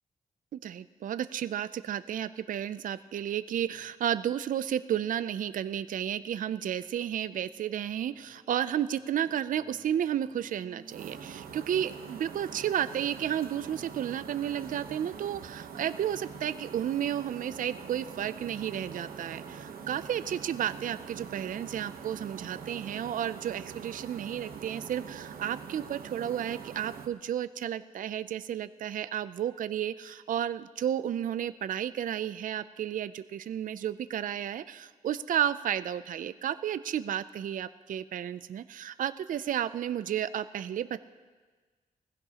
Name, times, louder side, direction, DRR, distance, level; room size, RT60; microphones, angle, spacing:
voice 1, 0.5-41.0, right 10 dB, 65° right, 14 dB, 0.4 m, -32 dB
sound 1, 7.4-23.4, right 3 dB, 25° right, 2.3 m, -58 dB
sound 2, 10.9-27.1, right 6 dB, 85° right, 1.0 m, -44 dB
20.5 x 15.5 x 2.9 m, 1.4 s
cardioid pair, 95°, 15 cm